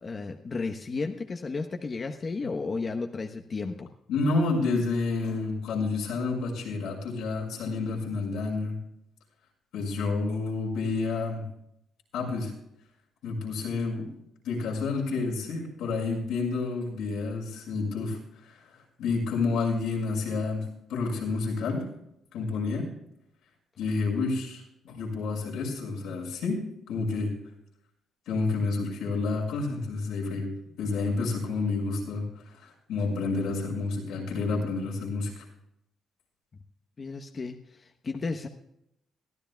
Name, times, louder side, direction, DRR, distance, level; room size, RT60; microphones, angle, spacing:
voice 1, 0.0-3.9 37.0-38.5, left 4 dB, 40° left, 4 dB, 1.0 m, -33 dB
voice 2, 4.1-8.8 9.7-11.5 12.1-12.5 13.2-14.1 14.4-18.6 19.0-21.9 22.3-22.9 23.8-26.6 26.9-27.3 28.3-35.4, left 3 dB, 90° left, -2 dB, 5.7 m, -29 dB
23.0 x 14.0 x 2.3 m, 0.80 s
cardioid pair, 90°, 0 cm